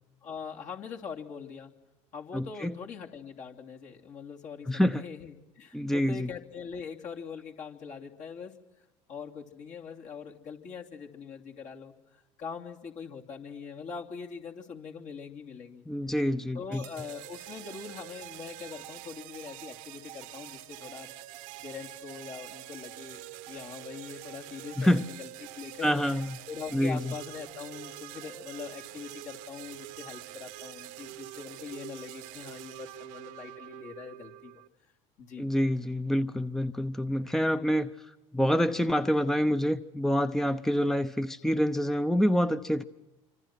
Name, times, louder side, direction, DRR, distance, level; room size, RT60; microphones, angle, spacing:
voice 1, 0.2-1.7 2.1-8.6 9.1-15.8 16.5-21.1 21.6-26.0 26.5-34.6 35.2-35.5, left 6 dB, 55° left, 0 dB, 3.0 m, -42 dB
voice 2, 2.3-2.7 4.7-5.0 5.7-6.3 15.9-16.9 24.8-25.0 25.8-26.4 26.7-27.1 35.4-42.8, equal, ahead, 11 dB, 0.8 m, -27 dB
sound 1, 16.7-34.7, right 17 dB, 70° right, 1.2 m, -45 dB
27.0 x 25.5 x 6.0 m, 1.1 s
hypercardioid pair, 75°, 16 cm